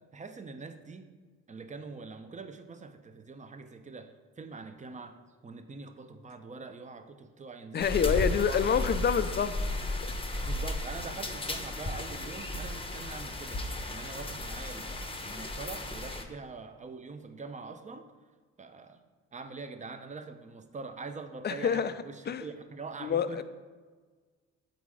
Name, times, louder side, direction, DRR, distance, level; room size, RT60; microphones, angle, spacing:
voice 1, 0.1-1.1 1.5-5.2 5.4-8.7 10.4-18.0 18.6-19.0 19.3-23.4, right 4 dB, 25° right, 8 dB, 0.6 m, -44 dB
voice 2, 7.7-10.1 21.4-21.9 22.3-22.4 23.0-23.4, left 7 dB, 35° left, 12 dB, 0.4 m, -28 dB
sound 1, 7.8-16.2, left 2 dB, 20° left, 0.8 m, -34 dB
8.3 x 4.0 x 4.8 m, 1.5 s
cardioid pair, 90°, 30 cm